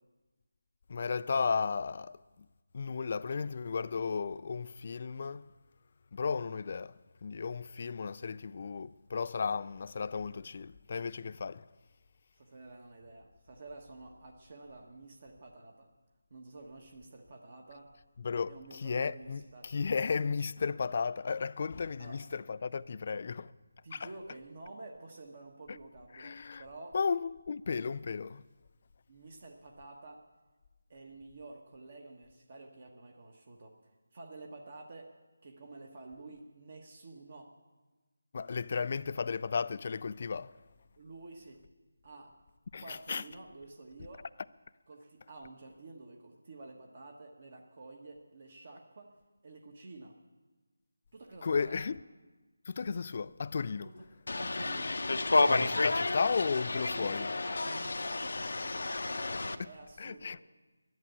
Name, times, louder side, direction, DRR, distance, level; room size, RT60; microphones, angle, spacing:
voice 1, 0.9-2.5 2.7-5.5 6.1-7.0 7.2-11.7 18.2-23.5 23.9-24.1 25.7-25.8 26.1-26.6 26.9-28.4 38.3-40.5 42.7-43.2 51.4-52.0 52.7-53.9 55.5-57.3 60.0-60.4, left 5 dB, 35° left, 0.4 m, -34 dB
voice 2, 12.3-15.9 16.3-17.9 18.5-19.7 22.0-22.2 23.8-27.0 29.1-30.2 30.9-33.8 34.1-35.1 35.4-37.5 41.0-41.6 42.0-42.3 42.7-44.3 44.9-49.1 49.4-50.1 51.1-51.8 53.8-54.0 54.3-54.9 56.9-60.4, right 2 dB, 40° right, 1.3 m, -50 dB
sound 1, 54.3-59.6, left 3 dB, 65° left, 0.8 m, -31 dB
11.0 x 11.0 x 9.2 m
figure-of-eight pair, 170°, 0 cm